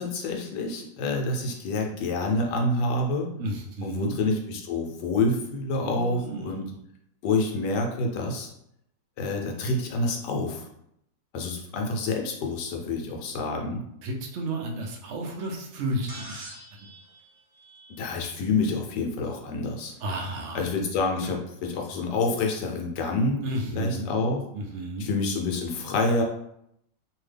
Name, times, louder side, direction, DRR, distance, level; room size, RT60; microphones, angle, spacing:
voice 1, 0.0-3.3 3.8-6.6 7.2-8.5 9.2-10.7 11.3-13.8 18.0-19.9 20.5-23.4 23.7-24.4 25.0-26.2, left 2 dB, 75° left, 2 dB, 1.2 m, -27 dB
voice 2, 3.4-4.2 5.8-6.8 14.0-16.5 16.8-16.9 20.0-20.7 23.4-24.2 24.5-25.1, right 1 dB, 80° right, 1 dB, 0.6 m, -32 dB
sound 1, 16.1-18.4 20.0-20.1 21.2-21.3, right 1 dB, 50° right, 1.0 m, -45 dB
2.8 x 2.7 x 3.3 m, 0.76 s
omnidirectional pair, 2.0 m